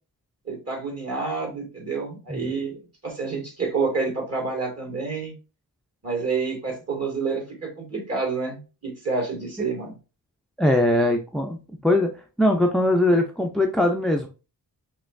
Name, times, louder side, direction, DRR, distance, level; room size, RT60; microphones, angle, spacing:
voice 1, 0.4-5.3 6.0-9.9, right 4 dB, 40° right, -1 dB, 2.3 m, -28 dB
voice 2, 10.6-11.6 11.8-12.1 12.4-14.3, left 1 dB, ahead, 4 dB, 0.4 m, -21 dB
5.5 x 3.0 x 2.5 m, 0.32 s
wide cardioid pair, 125°, 39 cm